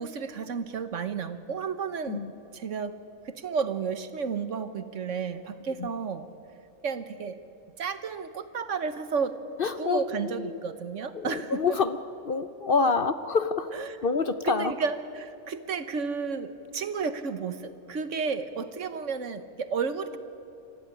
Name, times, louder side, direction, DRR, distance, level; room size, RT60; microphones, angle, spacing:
voice 1, 0.0-2.2 2.5-3.0 3.2-6.3 6.8-7.4 7.8-9.4 9.7-11.6 13.7-14.0 14.4-20.2, right 5 dB, 65° right, 11 dB, 1.4 m, -32 dB
voice 2, 9.6-10.6 11.1-12.0 12.2-14.7, left 4 dB, 50° left, 11 dB, 0.8 m, -27 dB
27.0 x 14.0 x 9.8 m, 2.9 s
omnidirectional pair, 1.4 m